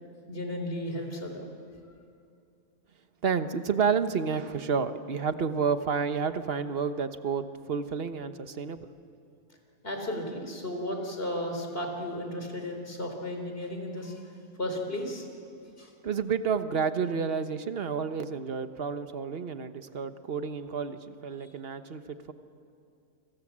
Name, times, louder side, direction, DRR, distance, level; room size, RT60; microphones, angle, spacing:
voice 1, 0.3-1.5 9.8-14.2 14.6-15.3 15.8-15.9 21.4-21.5, left 1 dB, 35° left, 3 dB, 4.2 m, -34 dB
voice 2, 3.2-8.9 16.0-22.3, right 6 dB, 40° right, 10 dB, 1.2 m, -30 dB
29.5 x 26.5 x 7.5 m, 2.6 s
omnidirectional pair, 1.6 m